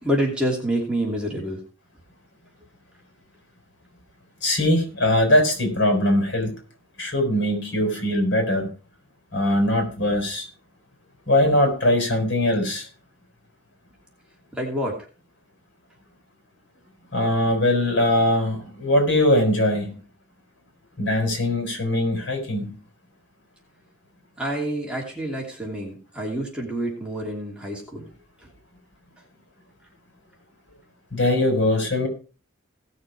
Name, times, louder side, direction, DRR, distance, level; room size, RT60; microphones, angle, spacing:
voice 1, 0.0-1.6 14.5-15.1 24.4-28.0, right 1 dB, 5° right, -2 dB, 2.9 m, -27 dB
voice 2, 4.4-6.5 7.0-8.7 9.3-10.5 11.3-12.9 17.1-20.0 21.0-22.8 31.1-32.1, left 1 dB, 60° left, 3 dB, 5.4 m, -21 dB
17.5 x 6.7 x 4.8 m, 0.37 s
head